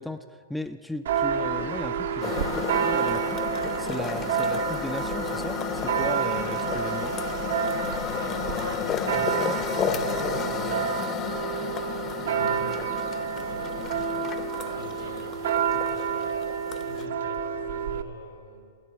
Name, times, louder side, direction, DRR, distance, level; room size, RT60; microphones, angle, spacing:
voice 1, 0.0-7.2 9.4-9.6, left 1 dB, 5° left, 9 dB, 0.4 m, -36 dB
Church bell, 1.1-18.0, right 7 dB, 70° right, 0.8 m, -29 dB
sound 1, 2.2-17.0, left 8 dB, 30° left, 0.7 m, -33 dB
voice 2, 8.1-10.8 11.9-12.7 13.3-14.2 14.7-16.4 16.8-18.7, left 3 dB, 70° left, 1 dB, 2.7 m, -42 dB
12.5 x 9.1 x 7.6 m, 2.2 s
hypercardioid pair, 115°, 0 cm